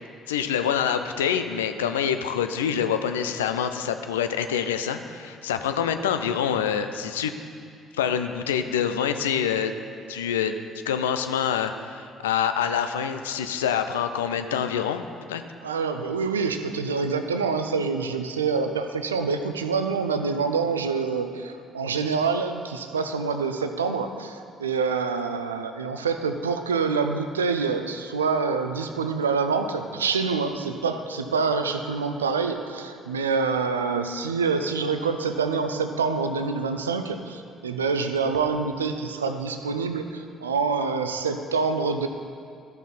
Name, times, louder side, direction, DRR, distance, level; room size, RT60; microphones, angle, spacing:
voice 1, 0.3-7.3 8.0-9.7 10.1-10.6 10.9-15.0 15.3-15.4, left 8 dB, 75° left, 8 dB, 0.4 m, -26 dB
voice 2, 15.6-42.1, right 5 dB, 80° right, 8 dB, 0.4 m, -26 dB
13.0 x 5.7 x 4.3 m, 2.4 s
figure-of-eight pair, 50°, 0 cm